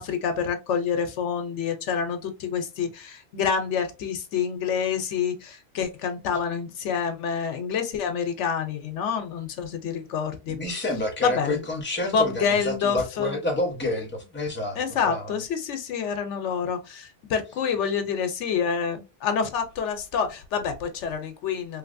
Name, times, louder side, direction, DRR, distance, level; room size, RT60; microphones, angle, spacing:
voice 1, 0.0-10.8 11.2-11.6 12.0-13.4 14.7-21.8, left 6 dB, 80° left, 1.0 m, -27 dB
voice 2, 10.5-15.3, left 1 dB, 10° left, 0.8 m, -29 dB
3.2 x 2.8 x 2.5 m
omnidirectional pair, 1.2 m